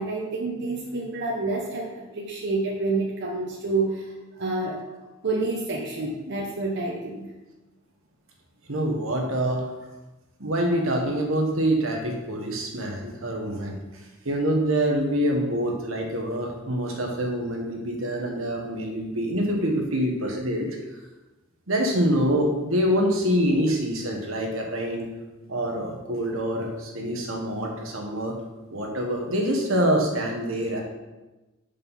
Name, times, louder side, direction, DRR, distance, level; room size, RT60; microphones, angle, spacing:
voice 1, 0.0-4.8 5.2-7.3, right 3 dB, 55° right, -3 dB, 0.9 m, -28 dB
voice 2, 8.7-9.6 10.4-13.8 14.2-20.7 21.7-25.1 25.5-28.3 28.7-30.8, equal, 75° right, 1 dB, 1.3 m, -25 dB
5.6 x 5.3 x 5.5 m, 1.1 s
head